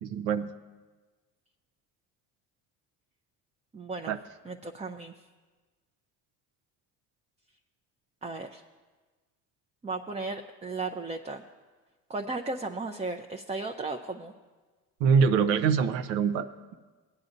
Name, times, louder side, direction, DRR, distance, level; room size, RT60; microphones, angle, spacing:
voice 1, 0.0-0.5 4.1-4.2 15.0-16.7, right 6 dB, 85° right, 10 dB, 0.7 m, -24 dB
voice 2, 3.7-4.1 4.4-5.1 8.2-8.6 9.8-11.4 12.1-14.3, right 3 dB, 15° right, 4 dB, 0.5 m, -35 dB
17.5 x 9.8 x 2.6 m, 1.3 s
supercardioid pair, 75°, 44 cm